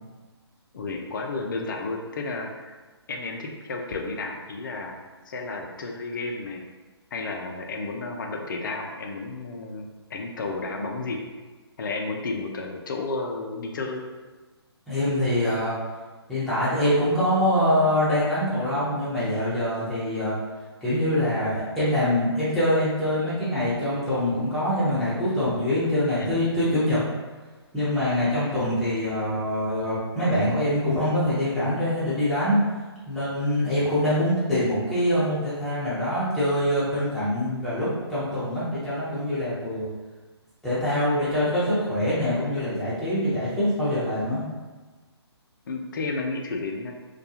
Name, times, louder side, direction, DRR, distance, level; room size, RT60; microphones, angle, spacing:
voice 1, 0.7-2.7 3.1-6.6 7.1-11.2 11.8-14.0 26.2-26.4 45.7-46.9, left 3 dB, 45° left, 2 dB, 0.4 m, -32 dB
voice 2, 14.9-15.7 16.3-20.3 20.8-27.0 27.7-32.6 33.1-39.9 40.6-44.5, left 1 dB, ahead, -13 dB, 0.7 m, -24 dB
2.3 x 2.2 x 2.7 m, 1.3 s
figure-of-eight pair, 145°, 14 cm